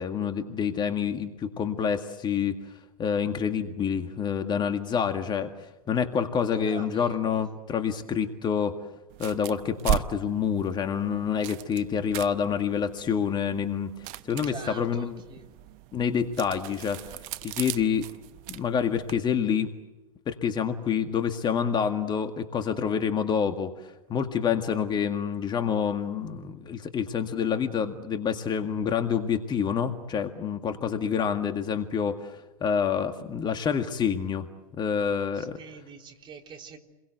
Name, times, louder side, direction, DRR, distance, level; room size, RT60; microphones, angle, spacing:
voice 1, 0.0-2.6 3.0-8.8 9.2-15.2 15.9-17.0 17.4-18.1 18.5-19.7 20.3-34.5 34.8-35.6, left 7 dB, 25° left, 7 dB, 2.0 m, -27 dB
voice 2, 6.5-7.1 14.4-15.5 35.4-36.8, right 5 dB, 25° right, 3 dB, 3.7 m, -44 dB
sound 1, 9.1-19.2, right 13 dB, 45° right, 1.0 m, -37 dB
29.5 x 22.5 x 8.1 m, 1.0 s
hypercardioid pair, 100°, 18 cm